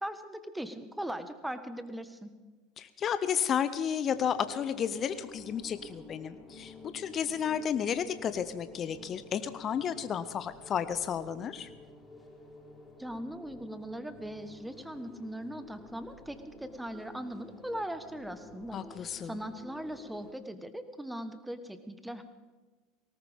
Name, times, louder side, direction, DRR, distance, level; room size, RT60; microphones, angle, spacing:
voice 1, 0.0-2.3 13.0-22.2, right 1 dB, 5° right, 10 dB, 1.3 m, -40 dB
voice 2, 2.8-11.7 18.7-19.4, left 8 dB, 40° left, 12 dB, 0.7 m, -32 dB
sound 1, 4.1-20.3, left 2 dB, 10° left, 4.1 m, -52 dB
19.0 x 18.0 x 3.6 m, 1.3 s
hypercardioid pair, 80°, 0 cm